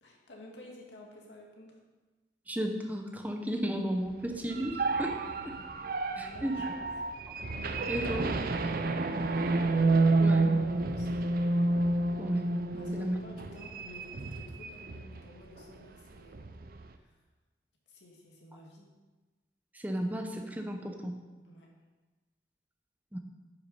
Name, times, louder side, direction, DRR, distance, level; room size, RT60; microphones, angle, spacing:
voice 1, 0.0-1.8 5.2-5.7 6.1-6.9 9.1-9.5 10.7-11.3 12.7-16.5 16.9-17.2 17.9-18.9 21.4-21.7, left 1 dB, 90° left, -1 dB, 2.0 m, -52 dB
voice 2, 2.5-5.2 5.4-5.5 6.2-6.6 7.6-8.4 10.2-10.5 12.2-12.5 12.7-13.2 19.7-21.2 23.1-23.2, equal, 10° right, 4 dB, 0.9 m, -34 dB
sound 1, 4.3-15.3 15.6-15.8 16.1-16.9, right 2 dB, 55° right, 0.6 m, -30 dB
9.4 x 6.2 x 5.5 m, 1.2 s
head